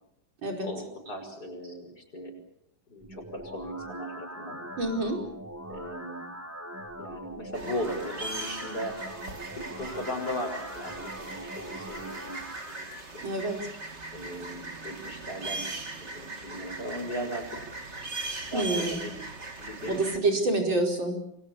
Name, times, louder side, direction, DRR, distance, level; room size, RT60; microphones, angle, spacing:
voice 1, 0.6-2.3 2.9-4.6 5.7-6.3 7.0-9.0 9.7-13.3 14.1-15.7 16.0-17.7 18.5-19.1 19.5-20.4, equal, 50° left, 5 dB, 6.4 m, -37 dB
sound 1, 3.0-13.0, equal, 10° right, 2.3 m, -42 dB
voice 2, 4.8-5.2 13.2-13.6 18.5-19.0 19.9-21.2, right 2 dB, 75° right, 2 dB, 5.7 m, -27 dB
sound 2, 7.5-20.2, right 3 dB, 35° right, 2.6 m, -39 dB
28.5 x 23.0 x 7.2 m, 0.78 s
omnidirectional pair, 2.1 m